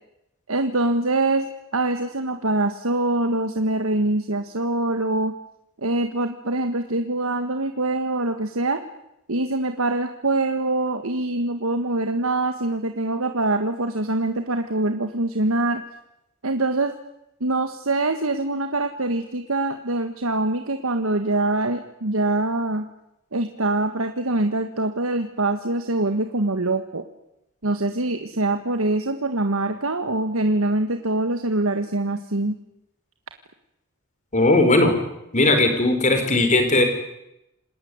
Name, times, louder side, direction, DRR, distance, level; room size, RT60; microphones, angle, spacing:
voice 1, 0.5-5.3 5.8-8.8 9.3-15.8 16.4-16.9 17.4-22.9 23.3-27.0 27.6-32.6, right 2 dB, 85° right, 7 dB, 1.7 m, -24 dB
voice 2, 34.3-35.0 35.3-36.8, left 2 dB, 35° left, 7 dB, 5.0 m, -18 dB
28.0 x 20.0 x 9.6 m, 0.87 s
head